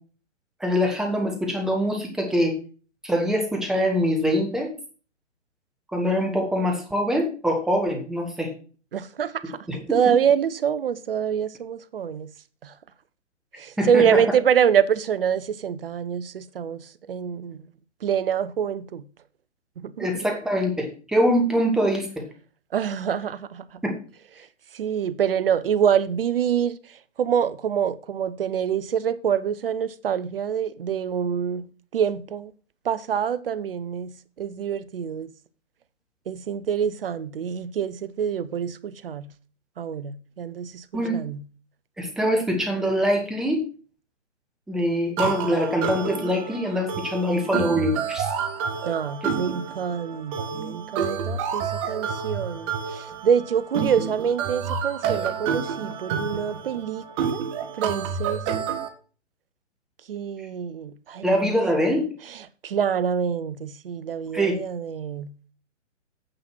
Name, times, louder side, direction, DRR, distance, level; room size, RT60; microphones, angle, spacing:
voice 1, 0.6-2.6 3.0-4.7 5.9-8.5 9.7-10.0 13.8-14.2 20.0-22.3 23.8-24.0 40.9-41.2 42.0-43.6 44.7-48.3 61.2-62.1 64.3-64.6, equal, ahead, 0.5 m, -24 dB
voice 2, 8.9-9.6 9.9-12.3 12.6-12.7 13.6-17.6 18.0-19.0 19.8-20.1 22.7-23.8 24.4-24.5 24.7-32.5 32.8-34.1 34.4-35.3 36.3-39.3 39.8-41.4 48.8-57.4 57.8-58.6 60.1-61.6 62.3-65.3, right 8 dB, 50° right, 0.7 m, -26 dB
sound 1, 45.2-58.9, right 6 dB, 25° right, 1.2 m, -29 dB
8.8 x 7.4 x 4.5 m
figure-of-eight pair, 135°, 37 cm